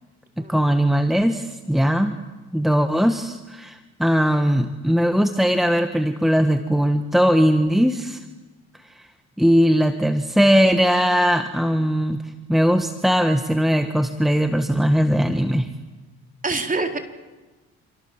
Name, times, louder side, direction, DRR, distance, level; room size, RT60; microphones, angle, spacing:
voice 1, 0.4-2.2 2.5-8.2 9.4-12.2 12.5-15.7, equal, ahead, 7 dB, 1.6 m, -19 dB
voice 2, 16.4-17.0, right 3 dB, 25° right, 4 dB, 4.1 m, -25 dB
28.0 x 27.0 x 7.4 m, 1.2 s
supercardioid pair, 70°, 30 cm